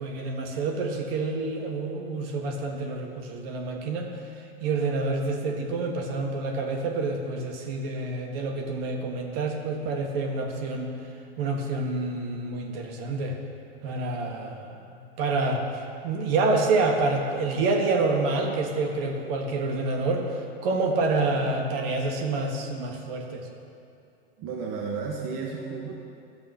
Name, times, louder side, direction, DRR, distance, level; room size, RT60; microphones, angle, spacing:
voice 1, 0.0-4.1 4.6-10.9 11.4-13.4 13.8-15.6 16.0-23.5, right 3 dB, 60° right, 2 dB, 1.7 m, -28 dB
voice 2, 24.4-26.0, right 5 dB, 40° right, 0 dB, 1.3 m, -33 dB
12.0 x 7.6 x 5.6 m, 2.6 s
hypercardioid pair, 110°, 33 cm